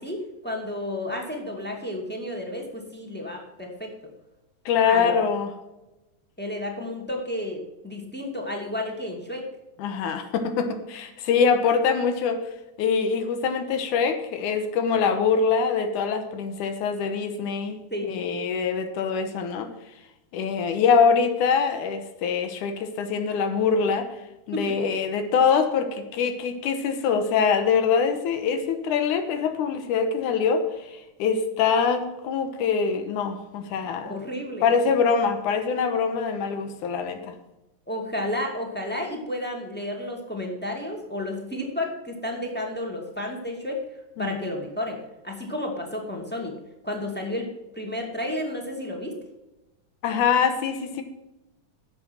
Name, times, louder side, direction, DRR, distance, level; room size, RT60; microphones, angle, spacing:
voice 1, 0.0-3.9 4.9-5.2 6.4-9.5 17.9-18.2 24.5-24.7 34.0-34.7 37.9-43.8 44.2-46.5 46.8-47.5 47.7-49.2, left 1 dB, 5° left, 0 dB, 2.0 m, -32 dB
voice 2, 4.7-5.5 9.8-12.5 12.8-19.7 20.3-24.1 24.5-34.2 34.6-37.3 44.2-44.3 50.0-51.0, left 6 dB, 85° left, 7 dB, 2.6 m, -24 dB
11.5 x 7.8 x 6.0 m, 0.99 s
omnidirectional pair, 3.4 m